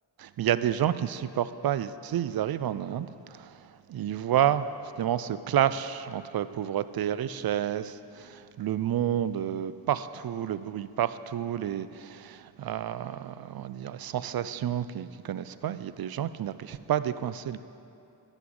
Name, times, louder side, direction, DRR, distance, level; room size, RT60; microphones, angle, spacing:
voice 1, 0.2-17.6, right 10 dB, 55° right, 14 dB, 0.5 m, -30 dB
11.5 x 8.1 x 3.7 m, 2.6 s
cardioid pair, 40°, 46 cm